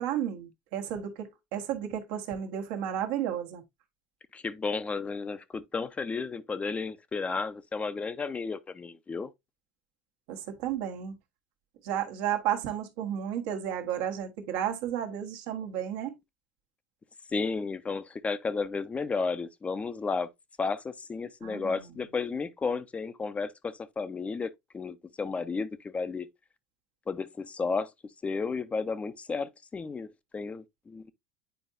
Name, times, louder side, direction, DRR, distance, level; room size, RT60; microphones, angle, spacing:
voice 1, 0.0-3.6 10.3-11.2 11.8-16.2 21.4-21.9, right 10 dB, 65° right, 1.3 m, -33 dB
voice 2, 4.3-9.3 17.3-20.3 20.6-26.3 27.1-27.9 28.2-31.1, left 4 dB, 20° left, 0.6 m, -33 dB
9.2 x 4.5 x 2.6 m
hypercardioid pair, 80°, 6 cm